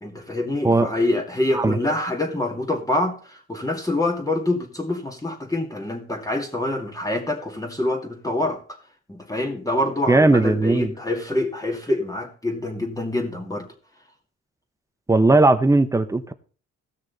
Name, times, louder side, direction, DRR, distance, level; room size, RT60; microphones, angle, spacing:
voice 1, 0.0-8.8 9.1-13.7, left 1 dB, 10° left, 2.3 m, -26 dB
voice 2, 10.1-10.9 15.1-16.3, right 2 dB, 10° right, 0.9 m, -17 dB
16.0 x 6.4 x 4.0 m
cardioid pair, 90°, 30 cm